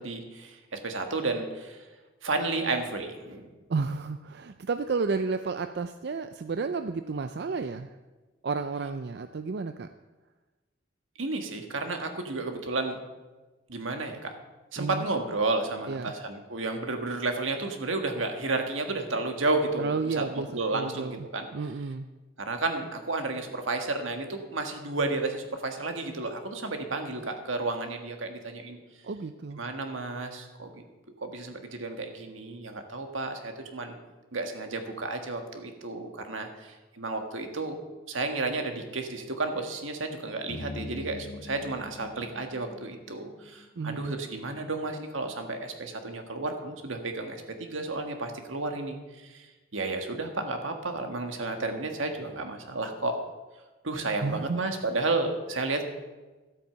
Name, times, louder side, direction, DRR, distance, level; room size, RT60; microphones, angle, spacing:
voice 1, 0.0-1.8 2.2-3.5 11.2-13.0 13.7-14.3 14.7-20.3 20.5-21.5 22.4-28.8 29.6-30.8 31.2-34.0 34.3-37.8 38.1-49.5 49.7-53.2 53.8-55.8, right 3 dB, 85° right, 5 dB, 1.7 m, -32 dB
voice 2, 3.7-8.0 8.4-9.9 14.8-15.1 15.9-16.1 19.8-20.5 20.7-21.3 21.5-22.1 29.0-29.6 43.8-44.1 54.2-54.6, right 4 dB, 55° right, 9 dB, 0.4 m, -31 dB
sound 1, 40.5-44.9, left 2 dB, 70° left, 1.4 m, -44 dB
12.5 x 8.5 x 6.9 m, 1.2 s
head